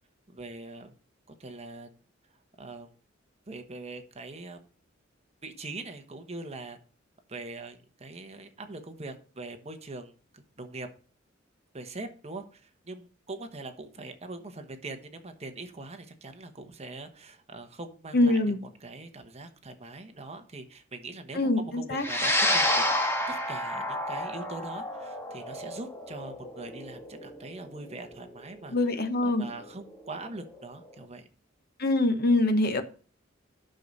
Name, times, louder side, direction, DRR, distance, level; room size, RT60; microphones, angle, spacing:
voice 1, 0.3-0.9 1.4-1.9 2.6-2.9 3.5-4.6 5.4-6.8 7.3-10.9 11.7-18.5 18.8-28.8 29.2-31.3, right 2 dB, 35° right, 6 dB, 1.2 m, -42 dB
voice 2, 18.1-18.6 21.3-22.1 28.7-29.4 31.8-32.8, left 2 dB, 55° left, 8 dB, 1.1 m, -24 dB
sound 1, 22.0-30.5, left 1 dB, 15° left, 1.5 m, -30 dB
10.5 x 6.5 x 4.1 m, 0.40 s
head